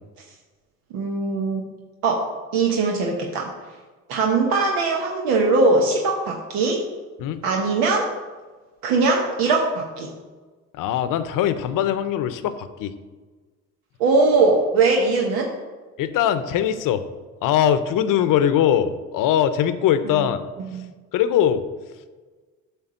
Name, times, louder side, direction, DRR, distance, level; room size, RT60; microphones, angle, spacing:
voice 1, 0.9-1.6 2.0-2.3 2.5-3.5 4.1-6.8 7.4-8.1 8.8-10.1 14.0-15.5 20.1-20.3 20.7-20.9, right 3 dB, 85° right, 0 dB, 1.0 m, -20 dB
voice 2, 10.7-12.9 16.0-17.0 17.4-20.4 21.1-21.6, left 10 dB, 70° left, 12 dB, 0.8 m, -21 dB
8.9 x 3.4 x 6.8 m, 1.3 s
supercardioid pair, 85°, 34 cm